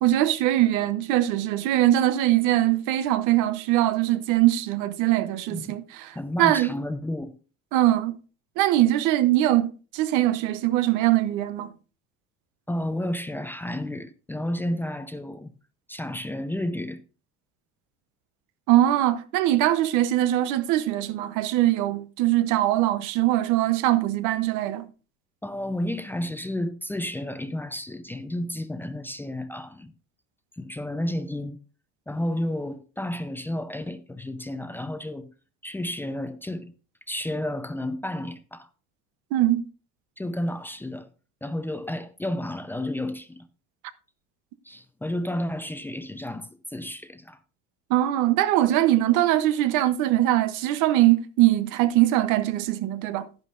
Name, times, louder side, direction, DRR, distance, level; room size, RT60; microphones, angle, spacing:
voice 1, 0.0-6.7 7.7-8.2 8.6-11.7 18.7-24.9 39.3-39.6 47.9-53.2, right 14 dB, 70° right, 0.8 m, -22 dB
voice 2, 6.1-7.3 12.7-15.5 15.9-17.0 25.4-29.9 30.6-31.6 32.1-35.3 35.6-36.7 37.1-38.7 40.2-41.1 41.4-43.5 44.6-47.4, left 1 dB, 5° left, 0.5 m, -31 dB
11.0 x 10.5 x 2.5 m
cardioid pair, 130°, 31 cm